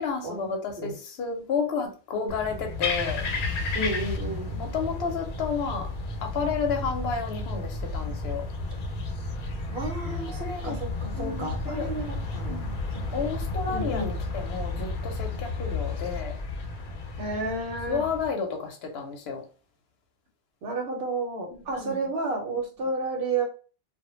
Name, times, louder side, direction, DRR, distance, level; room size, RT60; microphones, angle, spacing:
voice 1, 0.0-3.2 4.6-5.9 6.2-8.4 10.1-10.8 11.1-11.9 12.5-12.8 13.1-16.3 17.9-19.4 21.5-22.0, left 5 dB, 90° left, 0.9 m, -31 dB
sound 1, 2.3-18.3, left 3 dB, 60° left, 0.7 m, -32 dB
voice 2, 3.7-4.6 9.7-12.6 13.1-13.2 13.7-14.1 17.2-18.0 20.6-23.4, right 3 dB, 80° right, 0.9 m, -31 dB
2.1 x 2.1 x 3.0 m
omnidirectional pair, 1.0 m